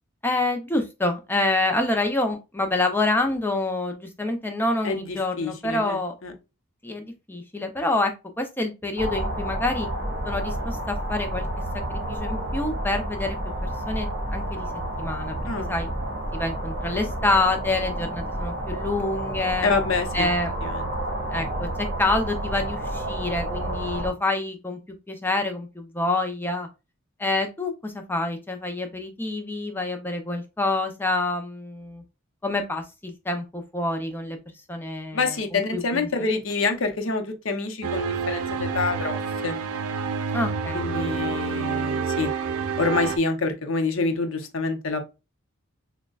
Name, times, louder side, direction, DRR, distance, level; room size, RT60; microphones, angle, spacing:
voice 1, 0.2-6.1 6.8-9.9 10.2-11.5 11.7-13.4 13.9-14.7 15.0-15.4 15.7-15.9 16.3-19.7 20.1-20.5 21.3-24.8 25.1-26.7 27.2-32.0 32.4-34.4 34.7-36.0 40.3-40.8, left 2 dB, 10° left, 0.5 m, -27 dB
voice 2, 4.8-6.3 15.5-15.7 19.6-20.3 20.6-20.9 35.1-39.2 39.4-39.6 40.7-42.3 42.8-45.0, left 3 dB, 65° left, 0.7 m, -27 dB
sound 1, 9.0-24.1, right 1 dB, 40° right, 1.5 m, -30 dB
sound 2, 37.8-43.2, right 5 dB, 90° right, 0.4 m, -28 dB
6.2 x 2.2 x 2.3 m
head